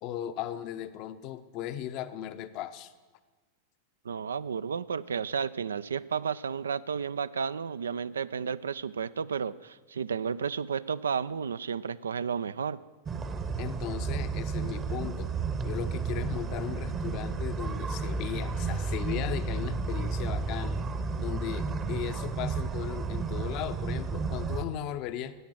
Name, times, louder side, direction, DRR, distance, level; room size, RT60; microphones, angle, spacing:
voice 1, 0.0-2.9 13.6-15.3 15.6-20.8 21.2-25.3, left 11 dB, 40° left, 11 dB, 0.7 m, -37 dB
voice 2, 4.0-12.8, right 6 dB, 70° right, 16 dB, 0.3 m, -32 dB
sound 1, 13.1-24.6, right 4 dB, 25° right, 0.9 m, -32 dB
13.5 x 9.0 x 7.9 m, 1.3 s
figure-of-eight pair, 90°, 0 cm